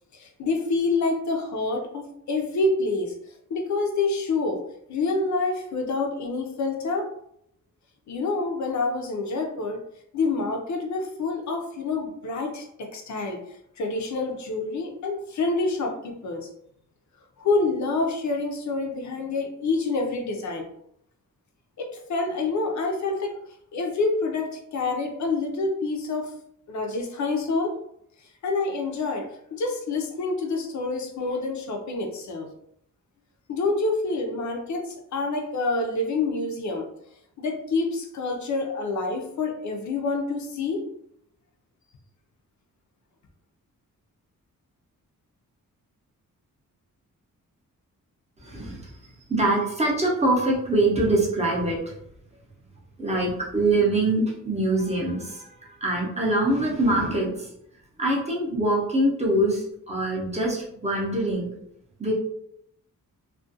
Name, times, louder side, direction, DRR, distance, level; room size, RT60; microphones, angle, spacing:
voice 1, 0.1-3.1 3.5-4.6 4.9-7.1 8.1-9.8 10.1-13.4 13.8-16.5 17.4-20.7 21.8-23.4 23.7-26.3 26.7-27.8 28.4-32.5 33.5-36.9 37.4-40.9, left 3 dB, 60° left, 3 dB, 0.5 m, -27 dB
voice 2, 48.4-49.0 49.3-51.8 53.0-57.5 58.0-61.5 62.0-62.1, right 1 dB, 20° right, -3 dB, 0.5 m, -24 dB
2.3 x 2.1 x 2.6 m, 0.73 s
wide cardioid pair, 165°, 33 cm